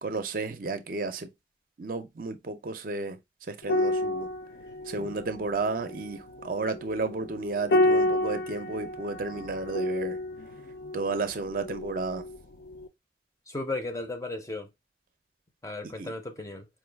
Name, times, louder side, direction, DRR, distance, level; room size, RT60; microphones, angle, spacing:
voice 1, 0.0-1.3 1.8-3.2 3.5-4.3 4.9-10.2 10.9-12.2 16.0-16.1, right 3 dB, 50° right, 0.5 m, -32 dB
sound 1, 3.6-12.4 12.7-12.9, left 1 dB, 70° left, 0.5 m, -30 dB
voice 2, 13.5-14.7 15.6-16.7, left 2 dB, 20° left, 0.5 m, -35 dB
4.6 x 2.3 x 3.3 m
head